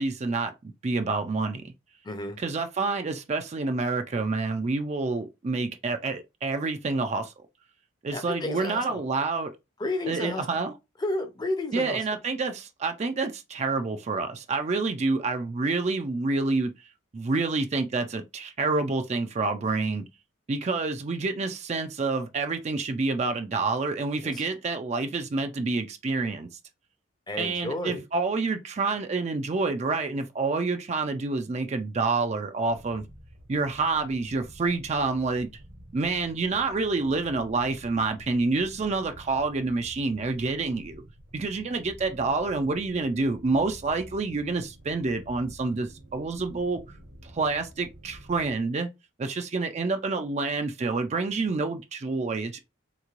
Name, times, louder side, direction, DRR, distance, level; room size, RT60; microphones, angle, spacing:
voice 1, 0.0-1.7 2.4-7.3 8.0-9.5 10.1-10.7 11.7-16.7 17.1-20.1 20.5-26.5 27.4-33.1 33.5-35.5 35.9-41.0 41.3-46.8 47.2-48.9 49.2-52.6, right 3 dB, 35° right, 0.4 m, -28 dB
voice 2, 2.0-2.4 8.1-9.0 9.8-10.5 11.0-12.0 24.2-24.4 27.3-28.0, left 2 dB, 20° left, 0.6 m, -32 dB
sound 1, 32.7-48.6, equal, 75° right, 1.2 m, -49 dB
3.6 x 3.0 x 2.5 m
head